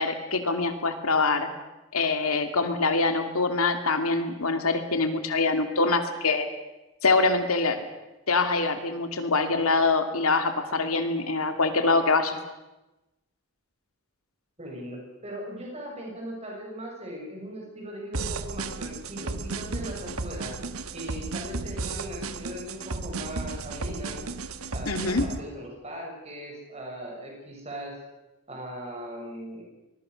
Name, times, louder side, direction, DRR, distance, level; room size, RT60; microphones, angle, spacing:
voice 1, 0.0-1.5 1.9-6.5 7.0-7.8 8.3-12.4 24.9-25.3, left 3 dB, 85° left, 7 dB, 2.7 m, -24 dB
voice 2, 14.6-20.6 20.9-24.2 24.7-28.0 28.5-29.6, equal, 30° right, -1 dB, 6.4 m, -39 dB
sound 1, 18.1-25.4, right 3 dB, 80° right, 1.2 m, -34 dB
25.0 x 21.0 x 6.5 m, 1.0 s
head